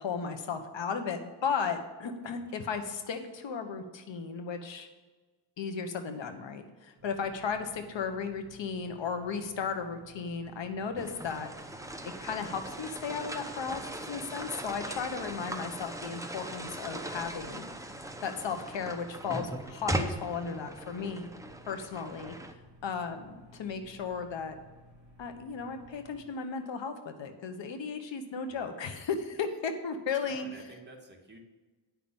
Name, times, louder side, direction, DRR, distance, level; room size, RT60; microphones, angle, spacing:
voice 1, 0.0-4.9 5.6-11.5 12.2-13.8 14.1-17.6 18.2-21.3 21.7-22.3 22.8-24.5 25.2-30.5, left 5 dB, 75° left, 7 dB, 1.2 m, -35 dB
sound 1, 7.0-26.2, left 1 dB, 40° right, 3.1 m, -57 dB
sound 2, 11.0-22.5, right 1 dB, 5° right, 0.9 m, -39 dB
voice 2, 28.4-29.0 30.2-31.4, right 2 dB, 25° right, 0 dB, 2.1 m, -52 dB
10.0 x 6.0 x 7.1 m, 1.3 s
cardioid pair, 100°, 44 cm